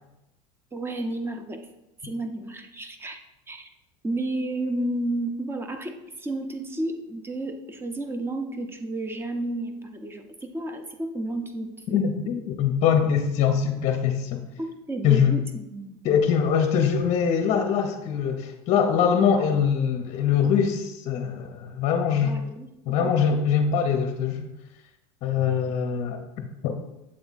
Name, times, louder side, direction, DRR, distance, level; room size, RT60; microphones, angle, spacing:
voice 1, 0.7-1.6 2.0-3.2 3.5-3.7 4.0-12.3 14.6-16.2 22.2-22.7 23.0-23.1, right 2 dB, 15° right, 7 dB, 0.7 m, -32 dB
voice 2, 11.9-14.4 15.0-15.3 16.0-22.4 22.9-24.4 25.2-26.2 26.6-26.8, left 7 dB, 45° left, 4 dB, 0.7 m, -23 dB
7.6 x 3.5 x 4.0 m, 0.94 s
supercardioid pair, 115°, 16 cm